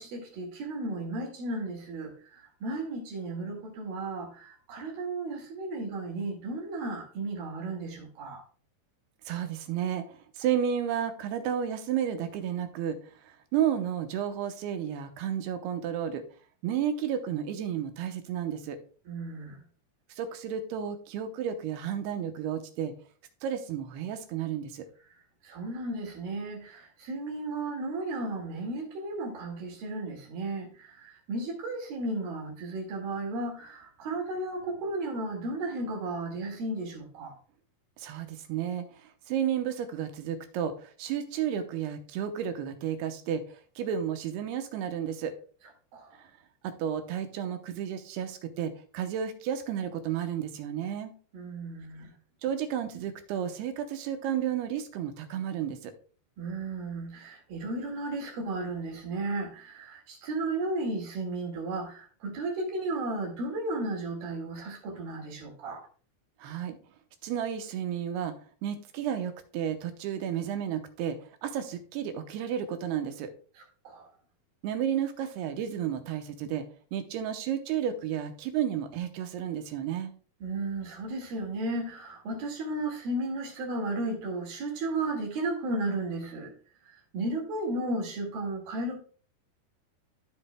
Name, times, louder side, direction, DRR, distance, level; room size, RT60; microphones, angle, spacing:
voice 1, 0.0-8.4 19.1-19.6 25.4-37.4 45.9-46.2 51.3-52.1 56.4-65.8 73.6-74.1 80.4-86.5 87.1-89.0, right 2 dB, 65° right, 0 dB, 3.7 m, -34 dB
voice 2, 9.3-13.0 13.5-16.2 16.6-18.8 20.2-22.9 23.4-24.9 38.0-38.9 39.3-43.4 43.8-45.3 46.6-51.1 52.4-55.9 66.4-66.8 67.2-68.3 68.6-71.2 71.4-73.3 74.6-76.6 76.9-80.1, right 9 dB, 85° right, 7 dB, 2.8 m, -32 dB
14.0 x 5.4 x 2.2 m, 0.41 s
omnidirectional pair, 4.5 m